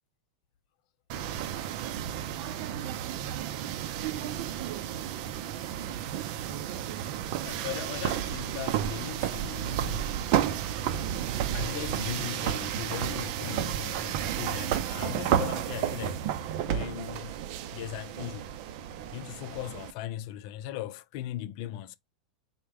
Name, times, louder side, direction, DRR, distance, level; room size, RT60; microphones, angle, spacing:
sound 1, 1.1-19.9, right 10 dB, 50° right, 0.5 m, -32 dB
voice 1, 7.4-10.2 11.5-16.2 16.6-17.3 17.7-18.5 19.1-22.0, left 13 dB, 55° left, 0.5 m, -38 dB
4.4 x 2.2 x 3.5 m
hypercardioid pair, 125°, 4 cm